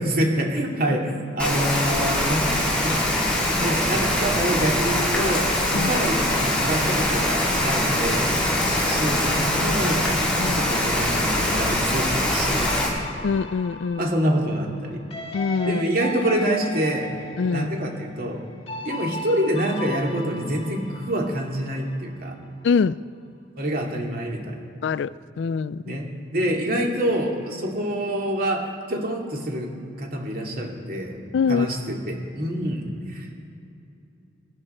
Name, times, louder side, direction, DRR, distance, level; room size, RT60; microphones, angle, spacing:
voice 1, 0.0-2.5 2.8-2.9 3.6-8.4 8.8-10.2 10.4-13.0 14.0-15.0 15.6-17.1 17.5-18.5 18.8-22.3 23.6-24.6 25.8-31.2 31.5-33.3, right 1 dB, 50° right, 0 dB, 2.4 m, -26 dB
Rain, 1.4-12.9, left 1 dB, 5° left, 3.4 m, -23 dB
voice 2, 8.6-9.0 10.4-10.6 13.2-14.1 15.3-15.8 17.4-17.7 22.6-23.0 24.8-26.0 31.3-31.7, left 5 dB, 65° left, 18 dB, 0.3 m, -24 dB
sound 1, 12.6-22.0, left 2 dB, 30° left, 1.7 m, -37 dB
24.5 x 11.0 x 4.4 m, 2.7 s
head